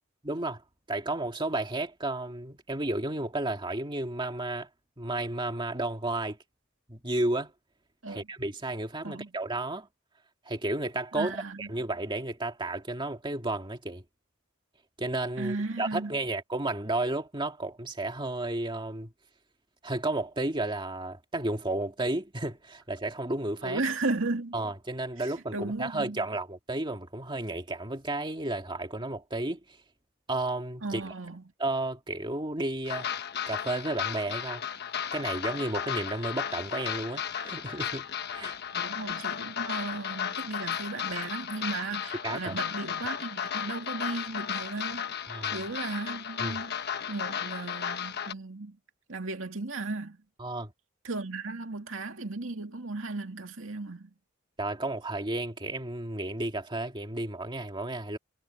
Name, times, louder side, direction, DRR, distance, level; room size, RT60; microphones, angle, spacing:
voice 1, 0.2-0.6 0.9-4.7 5.0-6.4 6.9-7.5 8.1-9.9 10.5-11.3 11.6-14.0 15.0-19.1 19.8-23.8 24.5-29.6 30.3-31.0 31.6-33.1 33.5-34.6 35.1-38.6 42.2-42.6 45.3-45.6 46.4-46.6 50.4-50.7 54.6-58.2, right 2 dB, 25° right, 2.1 m, -32 dB
voice 2, 11.1-11.7 15.4-16.2 23.6-24.6 25.2-26.2 30.8-31.4 38.7-45.1 45.5-48.8 49.1-50.2 51.0-54.1, right 3 dB, 70° right, 2.4 m, -35 dB
sound 1, 32.9-48.3, left 8 dB, 55° left, 1.2 m, -34 dB
head